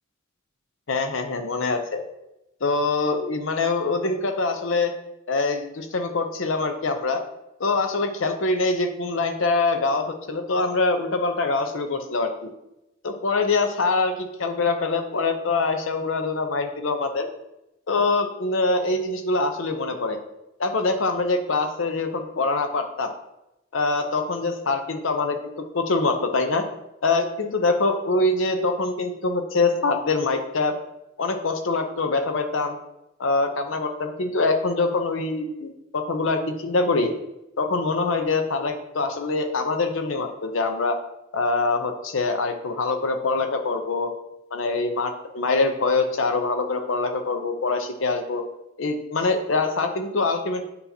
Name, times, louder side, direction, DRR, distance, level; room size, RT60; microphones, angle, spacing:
voice 1, 0.9-2.0 2.6-4.9 5.3-7.2 7.6-12.5 13.0-17.3 17.9-20.2 20.6-23.1 23.7-26.6 27.0-30.7 31.2-32.8 33.2-37.1 37.6-41.0 41.3-44.1 44.5-48.4 48.8-50.6, left 3 dB, 80° left, 6 dB, 0.7 m, -24 dB
8.0 x 5.6 x 2.8 m, 0.90 s
head